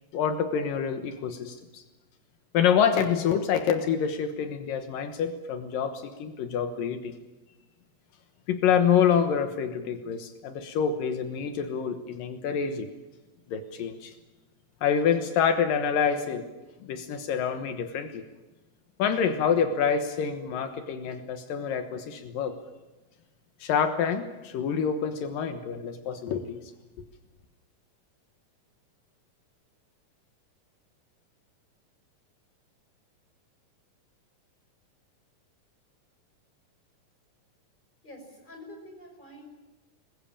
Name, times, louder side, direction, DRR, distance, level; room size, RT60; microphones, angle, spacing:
voice 1, 0.1-1.8 2.5-7.1 8.5-12.9 13.5-14.1 14.8-16.4 16.8-18.2 19.0-22.6 23.6-26.6, left 7 dB, 80° left, 8 dB, 3.0 m, -27 dB
voice 2, 38.0-39.4, left 1 dB, 15° left, 3 dB, 6.1 m, -46 dB
22.0 x 21.0 x 8.7 m, 1.1 s
omnidirectional pair, 3.9 m